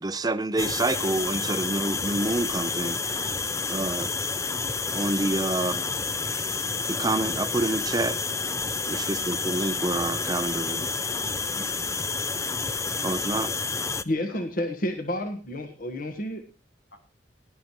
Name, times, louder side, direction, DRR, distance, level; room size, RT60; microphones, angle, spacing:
voice 1, 0.0-3.3 3.7-4.1 4.9-5.8 6.9-8.2 8.9-10.9 13.0-13.5, right 2 dB, 20° right, 0.6 m, -28 dB
sound 1, 0.6-14.0, left 4 dB, 15° left, 0.5 m, -29 dB
voice 2, 2.7-3.1 8.9-9.4 10.5-11.8 14.2-14.5 16.9-17.0, left 2 dB, 85° left, 3.5 m, -52 dB
voice 3, 14.0-16.4, left 1 dB, 50° left, 1.4 m, -30 dB
18.5 x 11.0 x 3.0 m
head